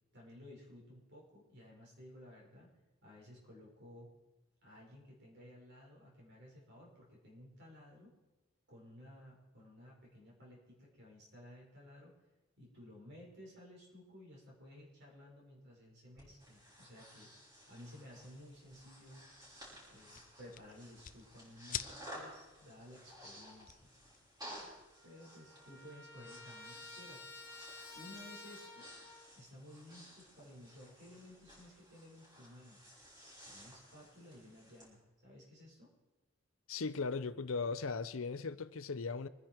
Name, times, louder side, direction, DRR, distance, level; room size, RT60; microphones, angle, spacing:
voice 1, 0.1-2.7 3.0-4.1 4.6-8.1 8.7-12.1 12.6-17.3 17.7-19.3 19.9-23.9 25.0-27.2 27.9-28.9 29.4-32.8 33.5-35.9, left 1 dB, 55° right, 5.5 m, -56 dB
Breathing, 16.2-34.9, equal, 20° right, 6.0 m, -55 dB
sound 1, 18.1-24.8, left 10 dB, 45° left, 0.6 m, -50 dB
Trumpet, 24.9-29.3, left 2 dB, 15° left, 2.8 m, -52 dB
voice 2, 36.7-39.3, left 4 dB, 80° left, 0.7 m, -38 dB
24.5 x 10.5 x 4.7 m
head